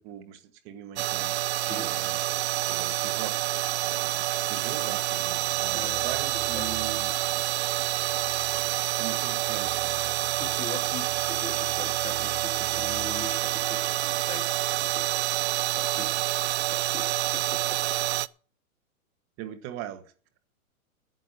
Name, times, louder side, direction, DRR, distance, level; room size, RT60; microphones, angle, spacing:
voice 1, 0.0-1.4 1.7-3.6 3.8-7.2 9.0-10.2 10.7-10.9 19.4-20.1, right 11 dB, 30° right, 11 dB, 1.3 m, -41 dB
sound 1, 1.0-18.3, right 15 dB, 50° right, 0.5 m, -28 dB
sound 2, 5.4-15.2, right 5 dB, 5° right, 1.6 m, -49 dB
voice 2, 5.7-6.1 6.5-6.8 10.4-14.5 14.8-15.1 15.7-16.1 16.7-17.8, left 5 dB, 15° left, 8 dB, 1.0 m, -42 dB
9.5 x 9.1 x 8.1 m, 0.41 s
hypercardioid pair, 140°, 44 cm